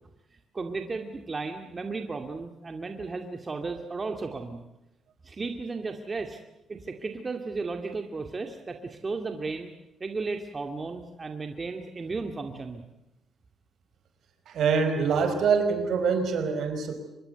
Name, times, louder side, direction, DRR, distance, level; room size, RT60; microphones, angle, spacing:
voice 1, 0.5-4.6 5.2-6.4 6.7-9.7 10.0-12.8, right 3 dB, 30° right, 5 dB, 2.2 m, -34 dB
voice 2, 14.5-17.0, right 5 dB, 70° right, 7 dB, 5.1 m, -25 dB
25.0 x 21.5 x 8.1 m, 0.93 s
cardioid pair, 90°, 0 cm